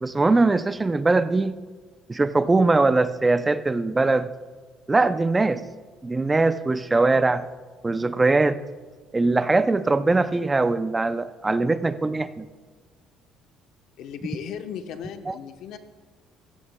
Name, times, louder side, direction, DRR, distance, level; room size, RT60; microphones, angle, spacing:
voice 1, 0.0-1.5 2.1-4.3 4.9-5.6 6.0-7.4 7.8-8.6 9.1-12.5 15.3-15.4, right 3 dB, 15° right, 12 dB, 0.4 m, -21 dB
voice 2, 14.0-15.8, left 8 dB, 70° left, 7 dB, 0.9 m, -36 dB
16.5 x 14.5 x 2.2 m, 1.4 s
cardioid pair, 110°, 0 cm